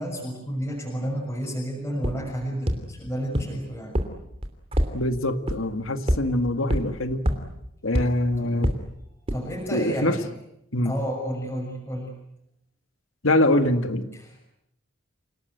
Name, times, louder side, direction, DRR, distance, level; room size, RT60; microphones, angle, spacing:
voice 1, 0.0-4.0 8.4-8.8 9.3-10.3 10.8-12.1 14.1-14.4, equal, 10° left, -3 dB, 6.3 m, -31 dB
sound 1, 2.0-2.1 2.7-2.8 3.3-3.4 3.9-4.0 4.4-4.9 5.5-5.6 6.1-6.2 6.7-6.8 7.3-7.4 7.9-8.0 8.6-8.7 9.3-9.4, equal, 30° right, 3.0 m, -22 dB
voice 2, 4.9-7.2 7.8-8.7 9.7-10.2 10.7-10.9 13.2-14.1, left 1 dB, 80° left, 9 dB, 1.9 m, -24 dB
28.5 x 19.0 x 9.2 m, 0.80 s
head